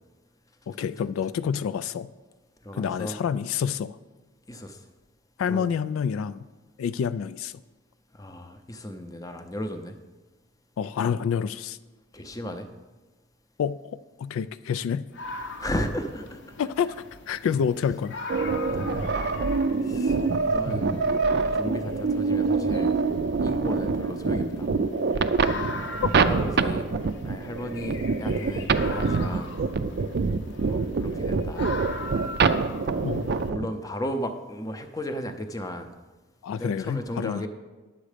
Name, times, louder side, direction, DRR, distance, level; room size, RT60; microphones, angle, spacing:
voice 1, 0.7-2.1 2.7-4.0 5.4-6.4 6.8-7.5 10.8-11.8 13.6-15.1 16.6-17.0 17.3-18.2 26.0-26.1 33.0-33.3 36.4-37.5, left 7 dB, 80° left, 14 dB, 0.3 m, -28 dB
voice 2, 2.6-3.2 4.5-4.8 5.5-5.7 8.1-10.0 12.1-12.7 15.6-16.4 18.7-19.1 19.8-20.2 20.4-21.1 21.5-22.9 23.4-24.7 25.8-26.9 27.2-29.6 30.7-31.7 33.3-35.9 36.5-37.5, equal, 15° left, 7 dB, 0.6 m, -34 dB
sound 1, 15.1-33.5, left 3 dB, 55° left, 0.7 m, -41 dB
sound 2, 18.3-33.7, right 4 dB, 50° right, 0.4 m, -25 dB
10.0 x 7.3 x 5.0 m, 1.2 s
head